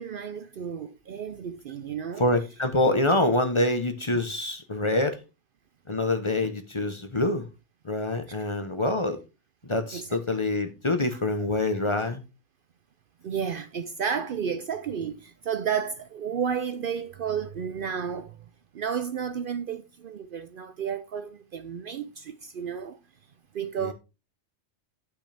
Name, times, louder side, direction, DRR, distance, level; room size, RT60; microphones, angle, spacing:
voice 1, 0.0-2.3 4.1-4.2 8.3-8.4 9.9-10.1 11.1-11.2 13.2-18.4 18.7-23.0 23.5-23.9, right 7 dB, 60° right, 0.7 m, -32 dB
voice 2, 2.2-5.1 5.9-7.4 7.8-9.2 9.7-12.2 23.8-23.9, left 2 dB, 30° left, 0.9 m, -26 dB
11.0 x 6.0 x 3.3 m
omnidirectional pair, 1.2 m